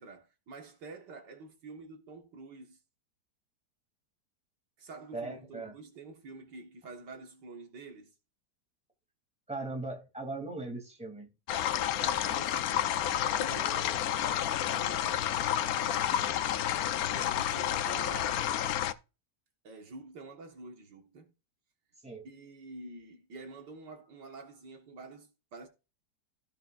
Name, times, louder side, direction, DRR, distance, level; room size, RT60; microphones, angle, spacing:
voice 1, 0.0-2.8 4.8-8.1 11.6-13.0 13.3-16.1 17.1-18.5 19.6-21.3 22.2-25.7, right 3 dB, 75° right, 2.1 m, -48 dB
voice 2, 5.1-5.7 9.5-11.3 22.0-22.2, right 2 dB, 5° right, 2.6 m, -39 dB
sound 1, 11.5-18.9, left 11 dB, 65° left, 1.0 m, -30 dB
16.0 x 6.0 x 2.5 m
omnidirectional pair, 1.9 m